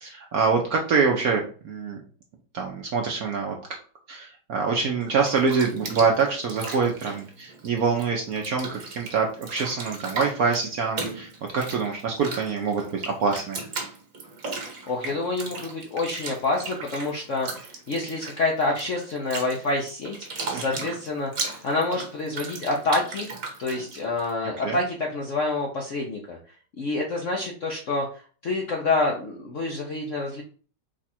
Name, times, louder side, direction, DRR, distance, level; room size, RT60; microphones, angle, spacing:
voice 1, 0.0-2.0 2.5-3.6 4.1-11.3 11.5-13.6 20.5-20.8 24.4-24.8, right 5 dB, 65° right, 1 dB, 0.9 m, -25 dB
Bathtub (filling or washing), 5.0-8.0 8.3-24.3, right 4 dB, 45° right, 1.5 m, -36 dB
voice 2, 14.9-17.5 17.9-20.2 20.5-23.3 23.6-26.4 26.8-30.4, left 2 dB, 60° left, 0 dB, 0.8 m, -27 dB
5.0 x 2.4 x 4.2 m, 0.40 s
omnidirectional pair, 2.2 m